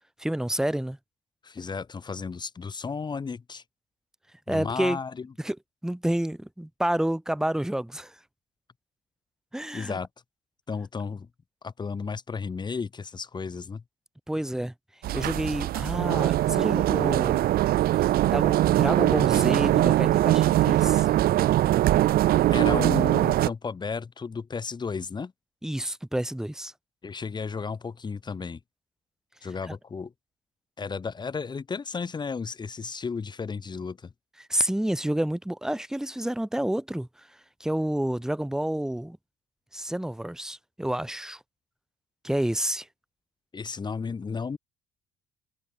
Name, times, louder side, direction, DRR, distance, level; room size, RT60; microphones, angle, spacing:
voice 1, 0.2-1.0 4.5-5.0 5.4-5.6 5.8-8.1 9.5-10.0 14.3-14.7 15.1-17.4 18.3-21.1 25.6-26.7 29.7-29.8 34.4-37.3 37.6-39.2 39.7-41.4 42.2-42.9, right 1 dB, 5° right, 1.3 m, -29 dB
voice 2, 1.4-3.6 4.5-5.3 9.7-10.1 10.7-11.3 11.6-13.8 22.5-25.3 27.0-28.6 29.4-30.1 30.8-34.1 43.5-44.6, left 5 dB, 25° left, 1.2 m, -33 dB
sound 1, 15.0-23.5, right 14 dB, 60° right, 0.6 m, -22 dB
cardioid pair, 110°, 17 cm